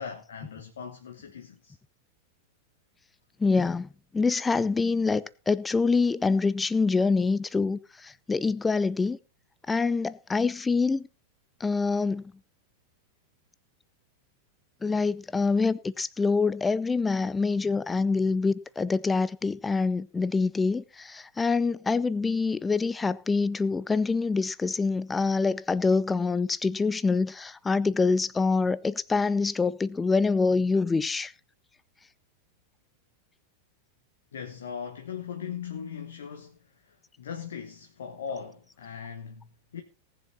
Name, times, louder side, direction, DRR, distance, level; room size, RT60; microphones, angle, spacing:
voice 1, 0.0-1.8 34.3-39.8, left 7 dB, 65° left, 1.4 m, -39 dB
voice 2, 3.4-9.2 9.7-11.1 11.6-12.3 14.8-31.3, left 4 dB, 15° left, 0.6 m, -25 dB
19.0 x 7.3 x 4.2 m
figure-of-eight pair, 90°, 0 cm